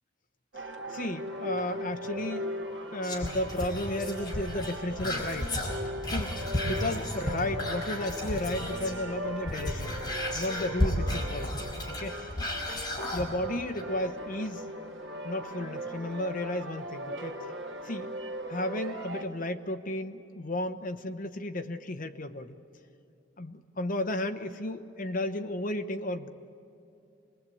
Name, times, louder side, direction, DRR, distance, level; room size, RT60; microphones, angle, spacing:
sound 1, 0.5-19.2, equal, 80° right, 2.0 m, -39 dB
voice 1, 0.6-2.5 2.9-5.6 6.1-6.4 6.6-10.0 10.3-11.5 11.9-12.2 13.1-14.7 15.2-17.5 17.8-18.1 18.5-22.6 23.4-26.3, left 1 dB, 45° left, 8 dB, 1.0 m, -33 dB
Whispering, 3.0-9.0 9.3-13.3 13.7-13.8, left 1 dB, 20° left, 4.3 m, -33 dB
26.0 x 20.5 x 8.5 m, 2.8 s
head